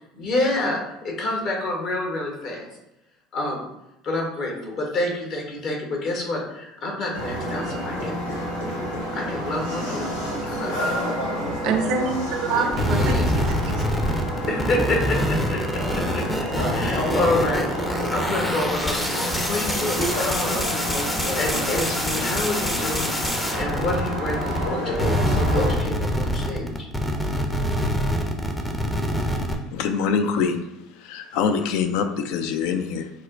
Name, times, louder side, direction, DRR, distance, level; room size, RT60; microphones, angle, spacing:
voice 1, 0.2-2.7 3.3-3.7 4.0-8.2 9.1-10.1 10.4-11.0 12.5-13.3 14.5-20.7 21.4-26.9, left 2 dB, 50° left, 0 dB, 0.9 m, -28 dB
sound 1, 7.1-25.7, equal, 85° left, 0.7 m, -29 dB
voice 2, 11.6-13.9 14.4-14.8, right 5 dB, 60° right, 4 dB, 0.5 m, -27 dB
sound 2, 12.7-24.7 24.9-29.5, equal, 10° left, 0.5 m, -25 dB
voice 3, 29.7-33.1, left 6 dB, 65° left, 7 dB, 0.3 m, -25 dB
4.1 x 2.1 x 2.4 m, 0.88 s
hypercardioid pair, 70°, 0 cm